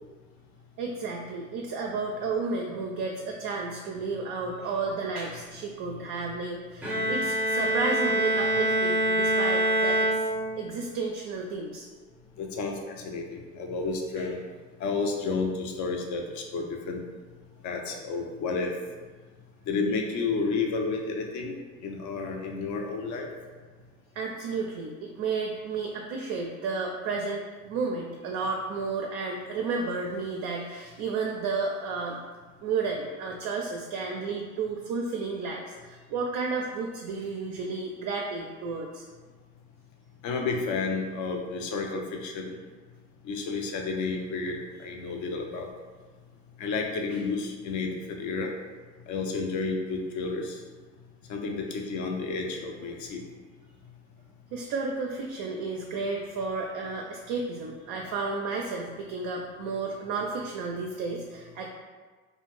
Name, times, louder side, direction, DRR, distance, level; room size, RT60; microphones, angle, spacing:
voice 1, 0.8-10.1 10.6-11.9 14.2-14.3 24.1-32.2 32.6-39.0 54.5-61.7, right 4 dB, 50° right, 1 dB, 0.4 m, -32 dB
Bowed string instrument, 6.8-10.8, right 1 dB, 5° right, 0.6 m, -25 dB
voice 2, 12.4-14.4 14.8-17.0 17.6-18.7 19.7-23.3 40.2-42.6 43.2-45.7 46.6-48.5 49.1-50.6 51.3-53.2, left 4 dB, 50° left, 2 dB, 0.6 m, -31 dB
2.4 x 2.2 x 3.1 m, 1.4 s
hypercardioid pair, 60°, 40 cm